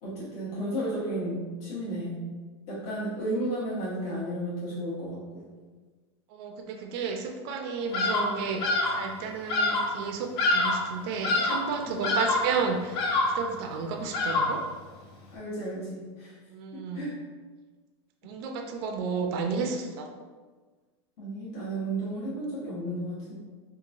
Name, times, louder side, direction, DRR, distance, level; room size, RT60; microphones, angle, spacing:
voice 1, 0.0-2.2 2.7-5.4 11.8-12.2 15.3-16.3 16.7-17.2 21.2-23.3, right 1 dB, 50° left, -8 dB, 1.1 m, -33 dB
voice 2, 6.3-14.6 16.5-17.0 18.2-20.1, right 5 dB, 60° right, 4 dB, 0.4 m, -32 dB
Bird vocalization bird call bird song, 7.9-8.3 8.6-9.0 9.5-9.9 10.4-10.9 11.2-11.7 12.0-12.5 12.9-13.5 14.1-14.7, left 2 dB, 70° left, 0.6 m, -26 dB
2.9 x 2.3 x 2.5 m, 1.4 s
hypercardioid pair, 120°, 14 cm